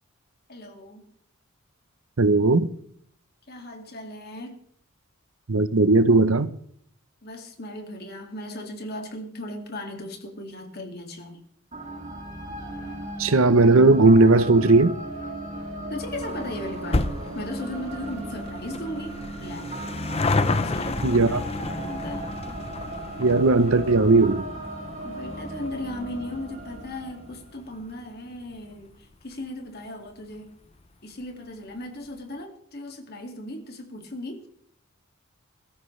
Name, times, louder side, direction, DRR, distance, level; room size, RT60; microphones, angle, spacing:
voice 1, 0.5-1.1 3.5-4.6 7.2-11.4 15.9-19.7 20.5-22.3 25.0-30.6 31.0-34.5, left 1 dB, 50° left, 2.3 m, -37 dB
voice 2, 2.2-2.7 5.5-6.5 13.2-14.9 21.0-21.4 23.2-24.4, right 3 dB, 75° right, 0.8 m, -17 dB
sound 1, 11.7-27.9, right 1 dB, 35° right, 2.8 m, -36 dB
sound 2, 16.2-28.9 29.2-29.3 30.2-30.3 30.5-30.6 30.8-30.9, left 3 dB, 30° left, 0.7 m, -32 dB
22.0 x 13.5 x 3.3 m
head